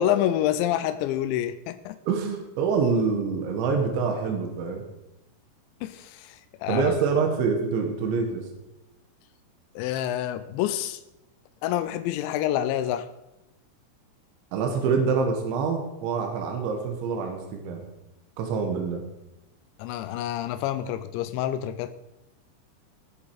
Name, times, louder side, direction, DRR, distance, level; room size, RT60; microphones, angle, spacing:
voice 1, 0.0-2.0 5.8-7.0 9.8-11.0 11.6-13.1 19.8-21.9, left 12 dB, 90° left, 11 dB, 2.9 m, -27 dB
voice 2, 2.1-4.8 6.7-8.5 14.5-17.8 18.4-19.0, right 5 dB, 85° right, 3 dB, 3.8 m, -26 dB
20.5 x 7.4 x 4.7 m, 0.93 s
omnidirectional pair, 5.2 m